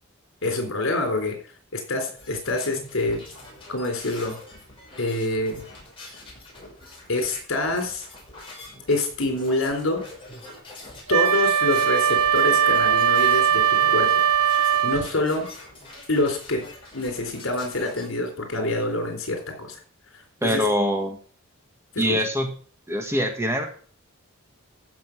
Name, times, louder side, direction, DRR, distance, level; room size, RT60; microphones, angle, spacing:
voice 1, 0.4-1.4 1.7-3.2 3.7-4.4 5.0-5.6 7.1-8.1 8.9-10.0 11.1-14.1 14.8-15.5 16.1-16.6 16.9-19.8 20.4-20.6 21.9-22.2, left 2 dB, 70° left, 4 dB, 3.9 m, -26 dB
sound 1, 2.2-18.1, left 2 dB, 25° left, 5.6 m, -44 dB
Wind instrument woodwind instrument, 11.1-15.1, right 8 dB, 85° right, 0.7 m, -20 dB
voice 2, 20.4-21.2 22.0-22.5 22.9-23.6, equal, 10° right, 4 dB, 1.6 m, -23 dB
14.0 x 6.0 x 6.0 m, 0.43 s
head